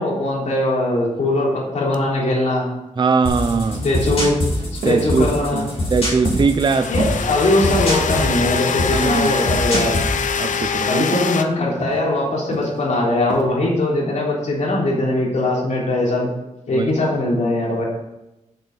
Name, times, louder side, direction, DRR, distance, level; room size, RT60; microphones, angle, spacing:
voice 1, 0.0-2.7 3.8-4.4 4.7-5.7 6.9-9.9 10.8-16.3 16.7-17.8, left 1 dB, 70° left, 3.5 m, -20 dB
sound 1, 1.9-2.0 6.6-11.4, left 6 dB, 90° left, 0.7 m, -24 dB
voice 2, 3.0-3.8 4.8-5.3 5.9-6.9 8.9-9.6 10.4-11.3 16.7-16.9, right 4 dB, 35° right, 0.5 m, -20 dB
sound 2, 3.2-10.6, left 1 dB, 50° left, 4.4 m, -25 dB
sound 3, 4.1-4.4 4.8-5.0 5.5-5.8 6.2-6.7 7.0-7.2 7.7-8.1 8.4-8.6 9.0-9.3 9.7-10.0 10.4-10.6 11.1-11.4 11.8-12.0 12.5-12.8 13.3-13.4, right 3 dB, 85° right, 2.0 m, -29 dB
7.8 x 7.1 x 6.6 m
wide cardioid pair, 135°, 13 cm